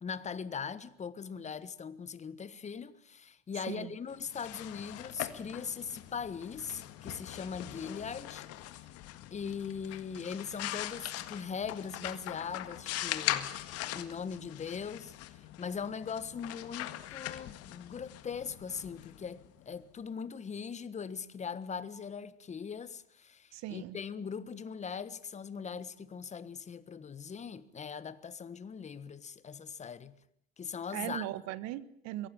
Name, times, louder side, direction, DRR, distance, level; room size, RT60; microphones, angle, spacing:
voice 1, 0.0-8.9 9.3-13.5 13.9-30.1 30.6-31.2, left 6 dB, 20° left, 1.4 m, -40 dB
sound 1, 4.1-19.8, left 14 dB, 50° left, 1.8 m, -41 dB
voice 2, 23.5-24.0 30.9-32.3, right 14 dB, 55° right, 1.5 m, -38 dB
23.0 x 17.5 x 8.9 m
hypercardioid pair, 90°, 32 cm